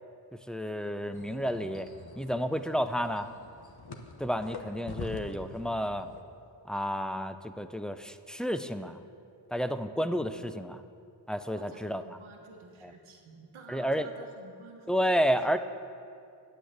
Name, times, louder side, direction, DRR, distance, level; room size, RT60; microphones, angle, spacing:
voice 1, 0.5-1.9 2.2-3.3 4.2-6.1 6.7-9.0 9.5-10.8 11.3-12.2 12.8-12.9 13.7-14.1 14.9-15.6, equal, ahead, 9 dB, 0.5 m, -31 dB
sound 1, 1.1-6.2, left 3 dB, 50° left, 1.1 m, -45 dB
voice 2, 11.6-15.2, right 3 dB, 90° right, 2 dB, 1.2 m, -51 dB
9.2 x 8.3 x 8.0 m, 2.4 s
cardioid pair, 45°, 48 cm